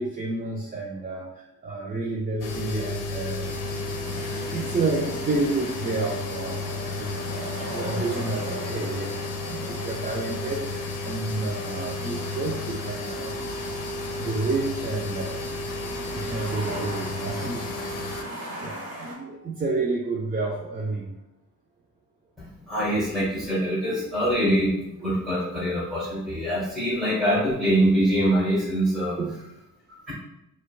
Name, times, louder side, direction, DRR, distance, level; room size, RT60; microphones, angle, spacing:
voice 1, 0.0-4.2 4.5-7.2 7.7-13.9 14.2-15.5 16.1-17.6 18.6-21.2 29.2-29.4, right 3 dB, 25° right, -3 dB, 0.4 m, -30 dB
sound 1, 2.4-18.2, left 3 dB, 70° left, 0.6 m, -33 dB
sound 2, 3.4-19.1, equal, 45° right, 1.3 m, -38 dB
voice 2, 22.7-29.2 30.1-30.2, equal, ahead, -10 dB, 1.1 m, -24 dB
4.4 x 2.3 x 2.3 m, 0.87 s
cardioid pair, 120°, 33 cm